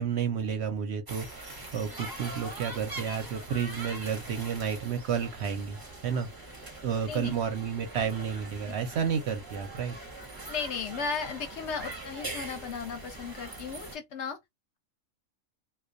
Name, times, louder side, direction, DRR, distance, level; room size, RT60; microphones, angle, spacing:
voice 1, 0.0-6.3 6.8-10.0, right 7 dB, 65° right, 0.7 m, -31 dB
sound 1, 1.1-14.0, right 2 dB, 25° right, 0.5 m, -42 dB
voice 2, 10.5-14.4, left 5 dB, 65° left, 0.8 m, -35 dB
2.3 x 2.2 x 2.5 m
omnidirectional pair, 1.4 m